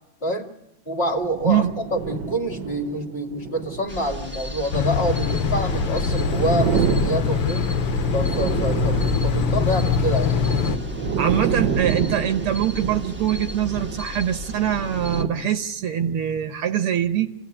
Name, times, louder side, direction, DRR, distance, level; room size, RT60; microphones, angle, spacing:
voice 1, 0.2-0.5 0.9-7.8 8.1-10.4, equal, 30° left, 1 dB, 2.0 m, -27 dB
sound 1, 1.0-15.3, right 7 dB, 60° right, 1.7 m, -29 dB
voice 2, 1.4-1.8 11.2-17.3, right 10 dB, 75° right, 7 dB, 2.2 m, -23 dB
sound 2, 3.9-15.2, left 2 dB, 5° right, 1.1 m, -34 dB
sound 3, 4.7-10.8, left 7 dB, 80° left, 2.0 m, -23 dB
28.0 x 16.5 x 10.0 m, 0.92 s
omnidirectional pair, 2.4 m